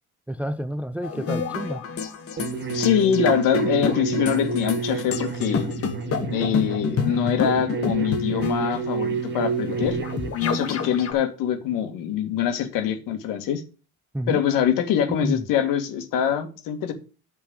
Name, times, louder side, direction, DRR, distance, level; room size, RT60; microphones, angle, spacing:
voice 1, 0.3-1.8 14.1-14.4 15.1-15.5, equal, 5° right, 0.4 m, -29 dB
sound 1, 1.0-11.1, left 6 dB, 45° left, 1.6 m, -29 dB
sound 2, 2.4-10.3, right 5 dB, 35° right, 1.5 m, -29 dB
voice 2, 2.7-5.6 6.3-10.0 10.3-13.6 14.3-16.9, left 9 dB, 75° left, 2.0 m, -24 dB
8.8 x 4.6 x 7.2 m
cardioid pair, 110°, 33 cm